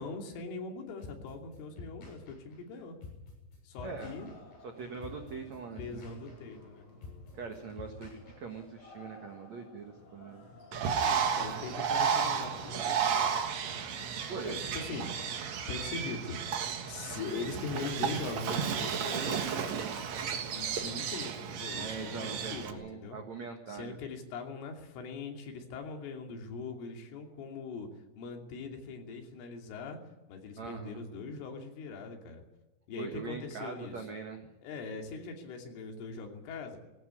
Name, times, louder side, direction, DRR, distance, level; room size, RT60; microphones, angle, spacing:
voice 1, 0.0-3.0 3.7-4.3 5.7-6.9 11.0-13.3 14.4-15.4 15.7-19.8 20.5-23.2 23.7-27.9 28.2-30.0 30.3-32.4 32.9-34.1 34.6-36.8, left 4 dB, 75° left, 3 dB, 5.3 m, -41 dB
sound 1, 1.0-8.8, left 4 dB, 50° left, 9.6 m, -49 dB
sound 2, 3.8-18.7, left 2 dB, 30° left, 6.6 m, -55 dB
voice 2, 3.8-4.1 4.6-6.0 7.3-10.5 14.3-14.6 19.1-20.0 21.8-24.0 30.6-31.0 33.0-34.5, right 5 dB, 70° right, 4 dB, 1.6 m, -42 dB
Bird, 10.7-22.7, right 7 dB, 90° right, 1.5 m, -33 dB
19.5 x 17.0 x 9.9 m, 1.0 s
omnidirectional pair, 5.8 m